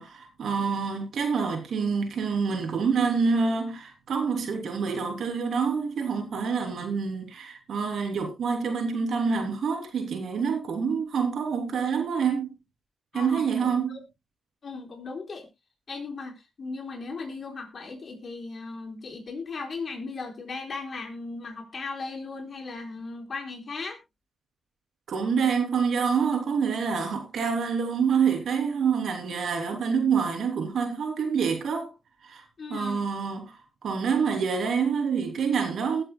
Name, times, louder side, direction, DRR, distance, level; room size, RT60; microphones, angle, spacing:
voice 1, 0.0-12.5 13.1-14.0 25.1-31.9 32.2-32.4 32.7-33.6 33.8-36.0, right 6 dB, 70° right, 3.2 m, -27 dB
voice 2, 13.1-14.0 14.6-15.5 15.9-24.0 32.6-33.0, left 4 dB, 50° left, 4.5 m, -37 dB
20.5 x 7.6 x 2.3 m
supercardioid pair, 50°, 0 cm